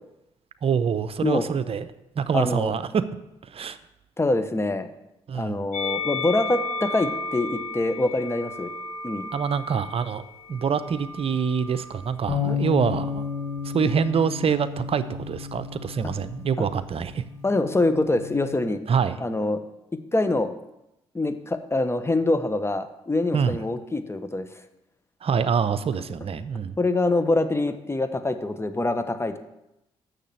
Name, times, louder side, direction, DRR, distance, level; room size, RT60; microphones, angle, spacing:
voice 1, 0.6-1.9 2.2-3.0 3.5-3.8 5.3-5.6 9.3-13.3 13.6-17.2 18.9-19.2 23.3-23.6 25.2-26.8, right 6 dB, 50° right, 13 dB, 0.7 m, -25 dB
voice 2, 2.3-2.7 4.2-4.9 5.3-8.7 9.0-9.3 12.5-12.6 16.6-16.7 17.4-18.8 19.2-19.6 20.1-20.5 21.1-24.5 26.8-29.4, left 2 dB, 20° left, 10 dB, 1.1 m, -25 dB
Musical instrument, 5.7-12.1 13.0-14.0, left 3 dB, 65° left, 2.9 m, -34 dB
sound 1, 12.3-18.5, left 7 dB, 40° left, 3.9 m, -32 dB
6.7 x 6.7 x 7.8 m, 0.89 s
hypercardioid pair, 45°, 13 cm